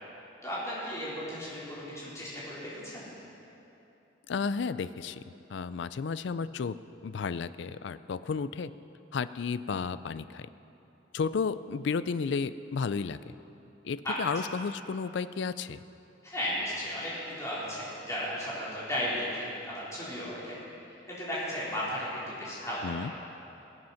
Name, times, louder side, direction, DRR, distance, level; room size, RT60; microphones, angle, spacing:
voice 1, 0.4-3.1 14.0-14.2 16.2-20.6 21.1-23.1, equal, 15° left, -9 dB, 3.9 m, -35 dB
voice 2, 4.3-5.2 5.5-6.8 7.0-8.7 9.1-10.5 11.1-13.2 13.8-15.8 22.8-23.1, left 5 dB, 70° left, 15 dB, 0.4 m, -32 dB
21.0 x 7.9 x 5.8 m, 2.9 s
head